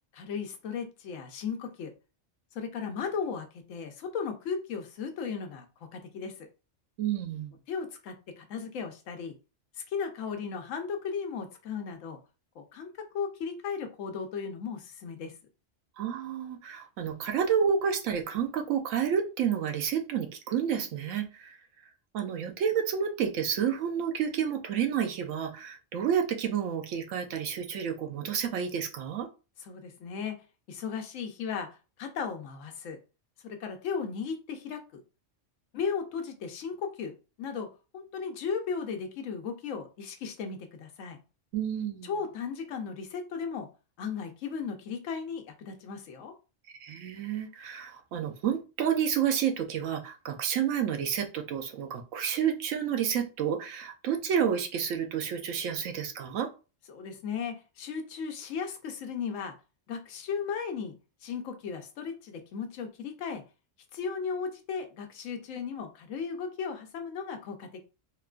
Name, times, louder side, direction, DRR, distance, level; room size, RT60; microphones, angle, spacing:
voice 1, 0.1-1.9 2.5-5.7 5.9-6.5 7.7-9.4 9.8-12.2 12.6-15.3 29.6-30.4 30.7-33.0 33.4-35.0 35.7-37.7 37.9-41.2 42.0-43.7 44.0-46.3 56.9-59.5 59.9-60.9 61.2-63.4 63.9-67.8, left 6 dB, 80° left, 5 dB, 1.0 m, -36 dB
voice 2, 7.0-7.5 16.0-21.6 22.1-29.3 41.5-42.1 46.8-56.5, right 8 dB, 80° right, 5 dB, 1.0 m, -30 dB
3.6 x 2.2 x 2.4 m, 0.32 s
omnidirectional pair, 1.3 m